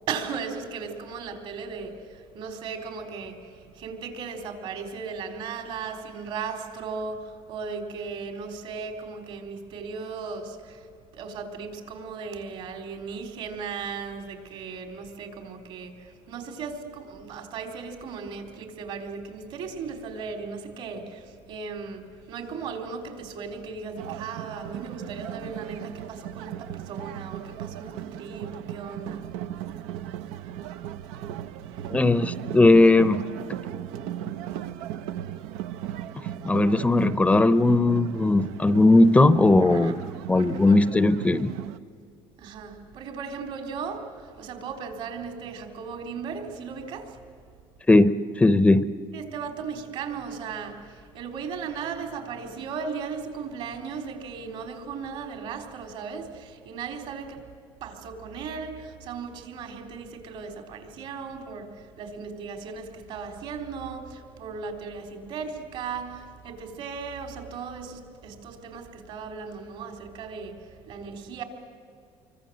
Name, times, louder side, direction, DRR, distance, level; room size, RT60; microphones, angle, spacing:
voice 1, 0.1-29.4 31.1-32.0 34.5-34.6 39.6-40.0 40.4-40.8 42.4-47.2 49.1-57.5 57.8-71.4, right 5 dB, 65° right, 4.0 m, -37 dB
sound 1, 24.0-41.8, right 11 dB, 85° right, 0.7 m, -37 dB
voice 2, 31.9-33.3 36.4-40.0 40.3-41.5 47.9-48.9, left 2 dB, 10° left, 0.7 m, -18 dB
26.5 x 24.0 x 7.8 m
cardioid pair, 125°, 10 cm